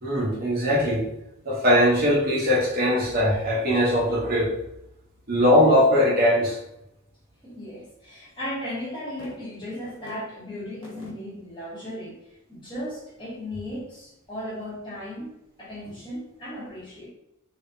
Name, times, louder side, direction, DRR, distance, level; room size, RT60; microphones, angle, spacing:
voice 1, 0.0-1.1 1.4-4.6 5.3-6.6, equal, 45° right, -5 dB, 1.0 m, -20 dB
voice 2, 7.4-12.2 12.5-17.1, left 1 dB, 25° left, -7 dB, 1.4 m, -36 dB
3.6 x 3.1 x 2.7 m, 0.82 s
head